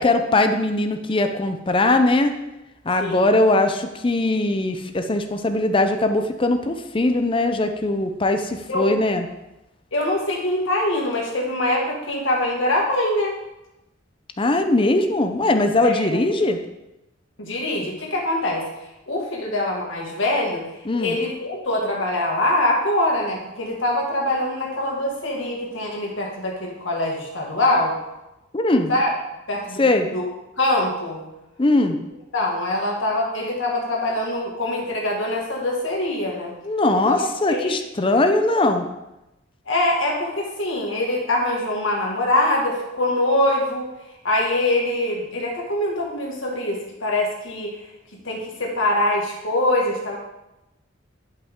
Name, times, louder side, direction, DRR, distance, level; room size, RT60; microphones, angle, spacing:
voice 1, 0.0-2.4 2.9-9.2 14.4-16.6 20.9-21.2 28.5-28.9 29.8-30.1 31.6-32.0 36.6-38.8, left 2 dB, 25° left, 7 dB, 0.6 m, -20 dB
voice 2, 3.0-3.3 8.7-8.9 9.9-13.4 15.8-16.2 17.4-18.6 19.1-20.6 21.0-28.0 28.9-29.1 29.5-29.8 30.1-30.2 30.6-31.2 32.3-36.6 37.1-37.8 39.7-43.9 44.2-47.8 48.2-50.2, left 1 dB, 85° left, -2 dB, 1.9 m, -23 dB
10.5 x 5.5 x 3.7 m, 0.95 s
head